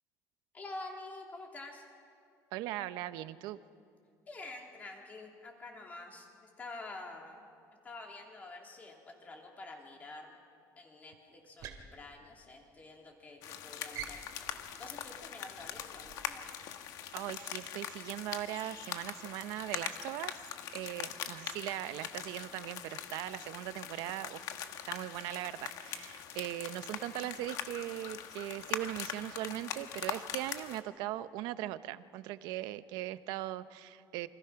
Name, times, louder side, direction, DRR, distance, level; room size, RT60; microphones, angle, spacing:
voice 1, 0.5-1.8 4.3-6.3 6.6-7.4 7.8-10.3 10.8-14.2 14.8-16.5, left 2 dB, 20° left, 1 dB, 3.2 m, -48 dB
voice 2, 2.5-3.6 17.1-20.3 20.7-24.5 24.9-34.3, right 14 dB, 80° right, 13 dB, 0.9 m, -39 dB
sound 1, 11.4-13.0 13.3-13.6 13.9-16.5, right 8 dB, 60° right, 2.6 m, -49 dB
sound 2, 13.4-30.8, left 10 dB, 60° left, 1.4 m, -42 dB
28.0 x 25.0 x 5.9 m, 2.4 s
cardioid pair, 170°, 7 cm